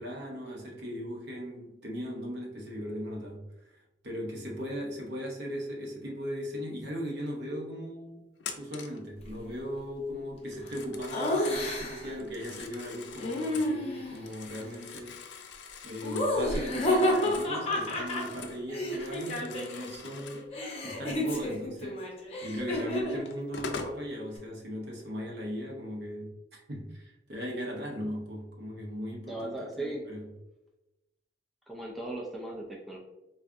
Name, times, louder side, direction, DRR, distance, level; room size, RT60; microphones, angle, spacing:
voice 1, 0.0-3.4 3.7-8.2 8.6-15.2 15.8-20.5 20.8-22.1 22.4-26.3 26.7-30.3, equal, 60° right, 0.8 m, -38 dB
Telephone, 8.4-9.0 10.5-11.7 12.2-13.8 14.2-18.6 18.9-20.5 22.6-22.7 23.3-24.0, left 5 dB, 70° left, 0.4 m, -44 dB
Laughter, 11.1-12.1 13.2-14.2 16.0-19.9 20.2-23.3, left 1 dB, 35° left, 0.7 m, -30 dB
voice 2, 29.3-30.0 31.7-33.0, right 2 dB, ahead, 0.4 m, -37 dB
4.5 x 2.4 x 2.5 m
head